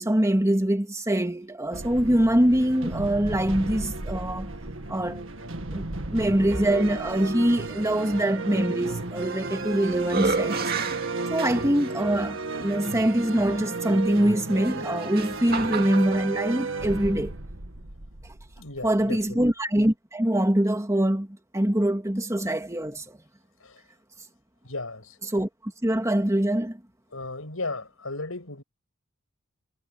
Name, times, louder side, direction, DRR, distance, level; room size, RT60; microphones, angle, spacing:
voice 1, 0.0-4.5 4.9-5.3 5.7-10.7 11.3-17.3 18.8-21.3 21.5-23.2 25.3-25.5 25.8-26.8, right 1 dB, 15° right, 2.3 m, -24 dB
sound 1, 1.7-19.3, right 3 dB, 70° right, 2.0 m, -34 dB
sound 2, 9.2-9.7 10.0-11.9 12.7-12.8 14.6-16.3, right 4 dB, 50° right, 2.2 m, -30 dB
voice 2, 18.6-19.4 23.6-23.8 24.6-25.2 27.1-28.6, left 2 dB, 85° left, 6.9 m, -35 dB
head